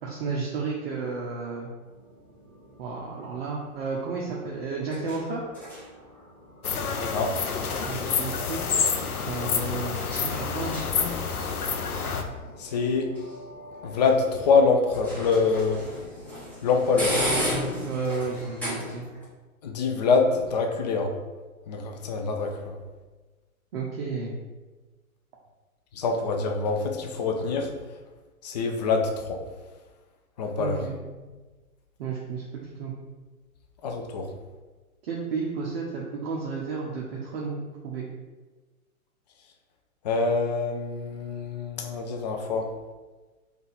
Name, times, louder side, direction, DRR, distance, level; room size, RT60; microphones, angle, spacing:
voice 1, 0.0-1.7 2.8-5.4 7.9-8.7 9.2-10.0 10.2-10.8 17.8-19.1 23.7-24.4 30.6-31.0 32.0-32.9 35.0-38.0, right 4 dB, 45° right, -3 dB, 0.6 m, -32 dB
sound 1, 1.8-19.3, equal, 5° left, 1.1 m, -37 dB
sound 2, 6.6-12.2, left 6 dB, 85° left, 0.6 m, -28 dB
voice 2, 7.0-7.4 12.6-13.1 13.8-15.8 16.6-17.2 19.6-21.1 21.7-22.7 26.0-27.7 28.4-29.4 30.4-30.8 33.8-34.3 40.0-42.7, left 4 dB, 30° left, 4 dB, 0.4 m, -25 dB
3.9 x 2.5 x 3.9 m, 1.3 s
figure-of-eight pair, 115°, 44 cm